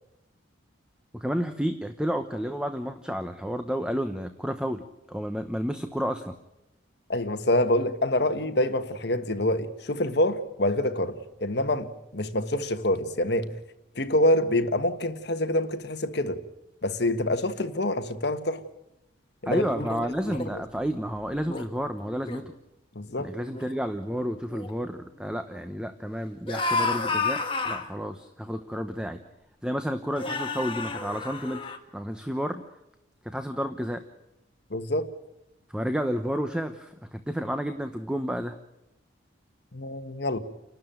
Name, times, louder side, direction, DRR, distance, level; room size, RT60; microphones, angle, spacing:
voice 1, 1.1-6.4 19.4-22.5 23.2-29.2 29.6-32.6 33.2-34.0 35.7-38.6, equal, 5° right, 0.9 m, -31 dB
voice 2, 7.1-13.5 14.0-16.4 16.8-18.6 19.4-19.7 22.9-23.3 34.7-35.1 39.7-40.4, left 1 dB, 60° left, 1.5 m, -26 dB
sound 1, 19.5-20.5 21.3-21.6 22.1-22.5 23.1-23.2 23.5-23.8 24.5-24.7 26.5-27.9 28.9-29.0 30.1-31.8, left 3 dB, 25° left, 1.8 m, -31 dB
30.0 x 12.5 x 9.0 m
head